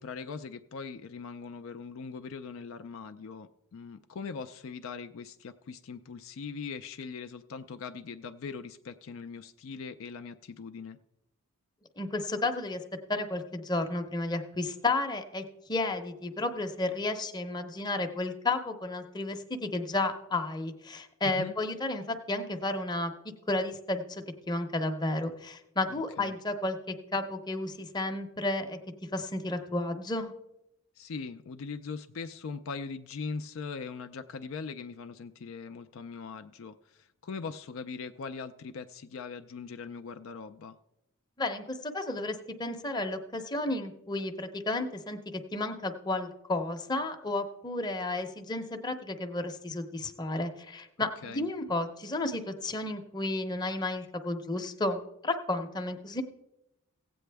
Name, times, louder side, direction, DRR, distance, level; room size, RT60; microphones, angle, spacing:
voice 1, 0.0-11.0 21.2-21.5 25.9-26.4 31.0-40.8 51.0-51.5, left 5 dB, 60° left, 9 dB, 0.4 m, -41 dB
voice 2, 12.0-12.8 13.1-15.4 15.7-23.1 23.5-26.8 27.1-28.8 29.1-30.3 41.4-45.2 45.5-56.2, left 2 dB, 20° left, 5 dB, 0.7 m, -32 dB
16.0 x 8.5 x 3.4 m, 0.87 s
head